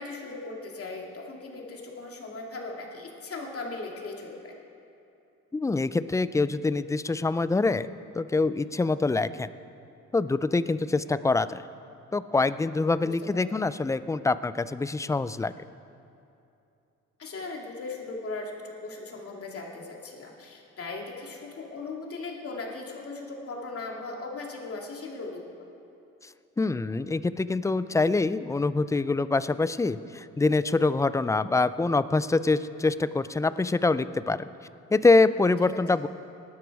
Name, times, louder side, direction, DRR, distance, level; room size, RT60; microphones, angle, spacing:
voice 1, 0.0-4.5 13.0-13.6 17.2-25.4 35.7-35.8, left 3 dB, 50° left, -1 dB, 2.6 m, -38 dB
voice 2, 5.5-7.9 8.1-9.5 10.1-11.6 12.1-15.5 26.6-34.4 34.9-36.1, left 3 dB, 10° left, 15 dB, 0.4 m, -25 dB
19.0 x 12.0 x 4.8 m, 2.7 s
cardioid pair, 90°, 30 cm